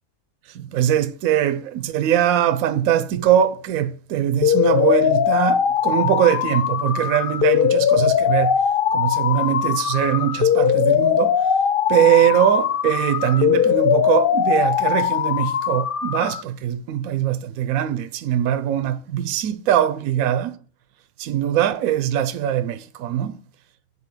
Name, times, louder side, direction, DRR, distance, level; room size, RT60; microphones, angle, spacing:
voice 1, 0.5-8.6 8.9-11.5 11.9-20.6 21.2-23.4, right 11 dB, 80° right, 1.0 m, -21 dB
sound 1, 4.4-16.4, left 9 dB, 65° left, 0.5 m, -20 dB
8.2 x 4.2 x 7.1 m
omnidirectional pair, 1.5 m